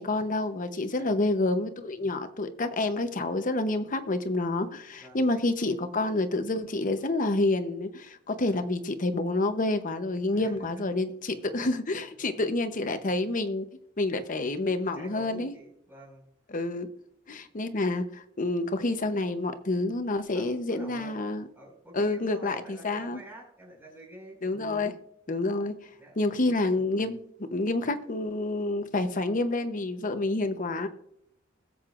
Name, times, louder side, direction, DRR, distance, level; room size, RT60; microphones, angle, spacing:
voice 1, 0.0-13.7 14.0-15.5 16.5-16.9 17.3-21.4 21.9-23.2 24.4-24.9 25.3-25.9 26.2-27.2 27.5-30.9, left 2 dB, 45° left, 8 dB, 0.9 m, -28 dB
voice 2, 5.0-5.3 8.4-8.6 10.3-10.7 11.3-11.7 12.1-12.5 14.9-16.2 20.2-21.2 21.5-24.4 26.0-26.5, right 1 dB, 10° right, -3 dB, 5.2 m, -48 dB
21.0 x 7.7 x 2.5 m, 0.74 s
head